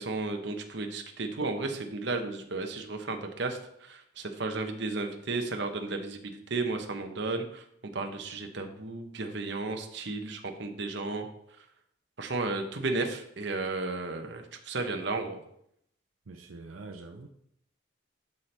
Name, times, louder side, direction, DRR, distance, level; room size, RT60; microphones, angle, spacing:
voice 1, 0.0-11.3 12.2-15.4, right 3 dB, 60° right, 5 dB, 0.9 m, -34 dB
voice 2, 16.3-17.3, right 3 dB, 85° right, 3 dB, 0.6 m, -45 dB
12.0 x 4.3 x 3.3 m, 0.72 s
head